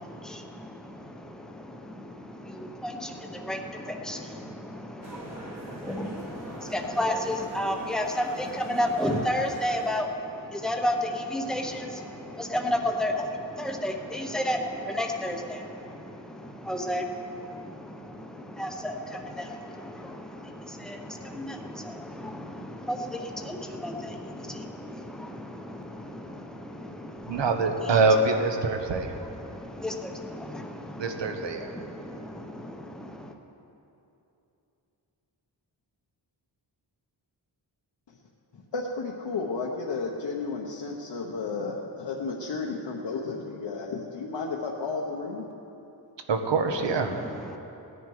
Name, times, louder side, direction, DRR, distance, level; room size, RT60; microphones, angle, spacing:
voice 1, 0.0-28.0 28.6-33.3 46.7-47.6, left 1 dB, ahead, 3 dB, 0.8 m, -33 dB
sound 1, 5.0-10.0, right 1 dB, 35° right, 1.5 m, -42 dB
voice 2, 27.3-29.1 31.0-31.7 46.3-47.2, right 3 dB, 75° right, 5 dB, 1.1 m, -24 dB
voice 3, 38.5-45.5, left 4 dB, 70° left, -2 dB, 1.1 m, -33 dB
17.5 x 10.0 x 4.8 m, 2.9 s
wide cardioid pair, 175°, 44 cm